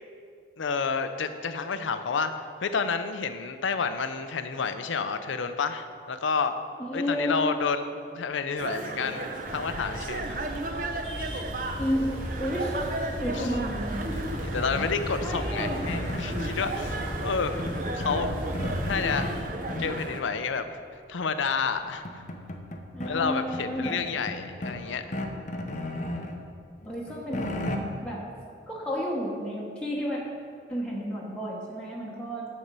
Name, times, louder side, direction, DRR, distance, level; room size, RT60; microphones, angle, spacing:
voice 1, 0.6-6.5 6.9-10.4 13.3-13.5 14.0-17.7 17.9-18.3 18.8-19.4 19.8-20.7 21.1-22.2 23.0-25.1, left 5 dB, 80° left, 9 dB, 0.5 m, -30 dB
voice 2, 6.8-7.4 11.8-12.9 13.2-14.2 15.2-15.8 22.9-24.0 26.9-28.2 28.7-30.2 30.7-32.5, equal, 5° left, -5 dB, 0.9 m, -31 dB
sound 1, 8.6-20.2, right 2 dB, 45° right, 0.6 m, -35 dB
sound 2, 9.4-19.4, equal, 85° right, 1.9 m, -36 dB
sound 3, 14.7-16.6 17.6-19.4 19.7-20.1 21.4-21.5 21.8-23.1 23.5-24.8 25.1-26.4 26.8-27.8, left 1 dB, 40° left, 0.7 m, -35 dB
9.7 x 4.3 x 6.7 m, 2.3 s
head